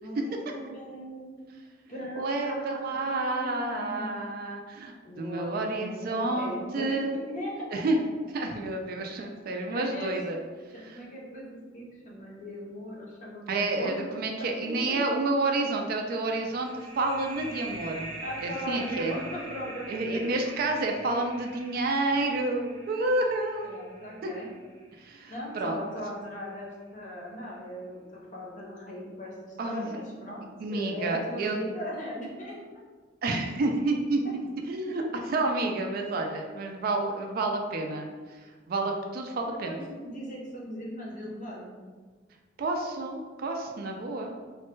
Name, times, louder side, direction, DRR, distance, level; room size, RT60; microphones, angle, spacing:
voice 1, 0.0-1.4 1.9-4.2 5.0-7.7 9.7-10.1 10.7-13.9 14.4-15.0 18.2-20.5 23.6-24.5 25.3-30.4 30.7-32.5 39.5-41.8, equal, 40° left, -3 dB, 0.6 m, -38 dB
voice 2, 2.1-7.1 7.7-8.0 8.3-10.4 10.8-11.0 13.5-18.1 18.4-19.1 19.9-23.8 24.2-24.3 25.0-25.8 29.6-30.0 30.6-31.6 33.2-38.4 38.7-39.8 42.6-44.3, right 2 dB, 50° right, 2 dB, 0.3 m, -29 dB
sound 1, 16.3-25.6, right 2 dB, 20° right, 0.7 m, -44 dB
3.1 x 2.1 x 3.0 m, 1.4 s
head